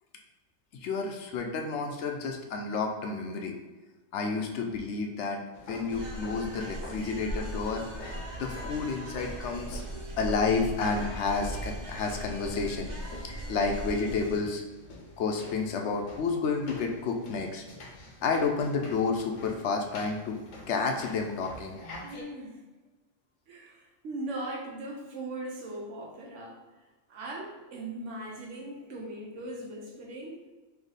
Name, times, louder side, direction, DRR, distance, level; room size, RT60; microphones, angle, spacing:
voice 1, 0.8-3.5 4.1-5.4 5.7-7.8 8.4-9.8 10.2-13.2 13.5-14.6 15.2-17.6 18.2-20.4 20.7-21.8, left 4 dB, 70° left, 3 dB, 0.8 m, -30 dB
sound 1, 5.5-22.2, left 1 dB, 85° left, 1.2 m, -47 dB
sound 2, 5.9-14.4, right 1 dB, 40° right, 0.8 m, -39 dB
voice 2, 22.0-22.6 23.5-26.6 27.1-30.4, right 1 dB, 80° right, -1 dB, 1.1 m, -39 dB
3.3 x 2.8 x 4.0 m, 1.2 s
omnidirectional pair, 1.3 m